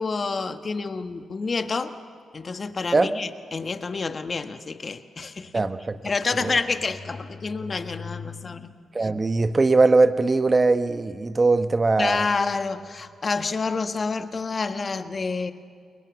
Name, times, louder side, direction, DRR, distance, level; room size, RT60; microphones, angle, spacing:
voice 1, 0.0-1.9 2.3-5.6 6.0-8.7 9.0-9.1 12.0-15.5, left 4 dB, 45° left, 1.4 m, -28 dB
voice 2, 5.5-6.0 6.4-6.5 8.9-12.3, right 3 dB, 35° right, 1.1 m, -20 dB
30.0 x 21.5 x 7.2 m
supercardioid pair, 55°, 0 cm